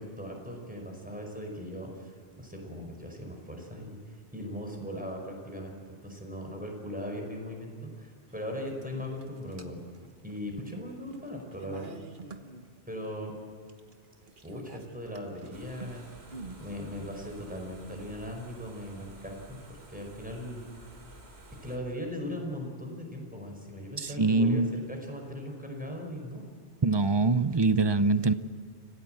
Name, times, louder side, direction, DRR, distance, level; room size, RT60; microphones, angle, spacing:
voice 1, 0.0-5.7 6.0-9.8 10.2-12.0 12.9-13.3 14.4-16.1 16.5-20.7 21.6-26.4, equal, 5° right, 1 dB, 5.1 m, -39 dB
sound 1, 8.3-8.4 8.8-10.4 10.7-13.2 13.7-16.8, right 3 dB, 50° right, 1.5 m, -47 dB
sound 2, 15.5-21.8, right 1 dB, 65° right, 3.1 m, -51 dB
voice 2, 24.0-24.8 26.8-28.3, right 3 dB, 30° right, 13 dB, 0.6 m, -24 dB
26.5 x 17.5 x 7.8 m, 2.2 s
omnidirectional pair, 1.1 m